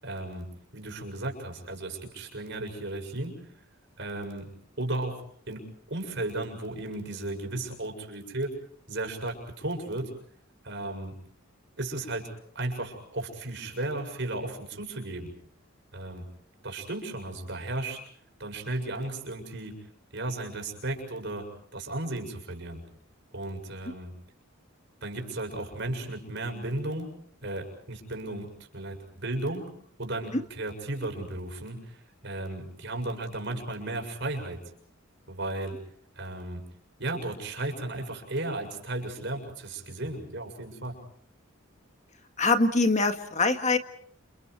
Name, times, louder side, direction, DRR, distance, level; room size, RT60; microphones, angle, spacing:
voice 1, 0.0-3.5 4.0-4.5 4.8-8.5 8.9-10.1 10.6-11.1 11.8-15.3 15.9-16.3 16.6-18.0 18.4-22.8 23.3-24.1 25.0-27.1 27.4-29.7 30.0-34.6 35.3-35.8 36.2-36.6 37.0-41.0, right 2 dB, 60° right, 4 dB, 7.0 m, -35 dB
voice 2, 42.4-43.8, left 3 dB, 35° left, 7 dB, 1.7 m, -23 dB
29.5 x 28.5 x 4.7 m, 0.63 s
head